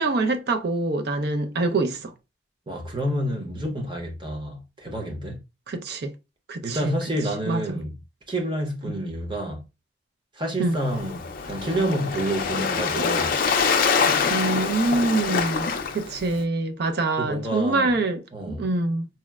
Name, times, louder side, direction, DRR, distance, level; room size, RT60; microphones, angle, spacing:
voice 1, 0.0-2.1 5.7-6.1 6.5-7.0 7.5-7.8 8.9-9.0 10.6-10.8 14.3-18.2 18.5-19.1, right 2 dB, 55° right, 0.5 m, -25 dB
voice 2, 2.7-5.4 6.6-7.9 8.3-9.6 10.3-13.4 17.2-17.9 18.3-18.7, right 1 dB, 25° right, 0.7 m, -29 dB
Waves surf, 10.7-16.4, left 5 dB, 50° left, 0.4 m, -25 dB
4.1 x 2.0 x 2.3 m
head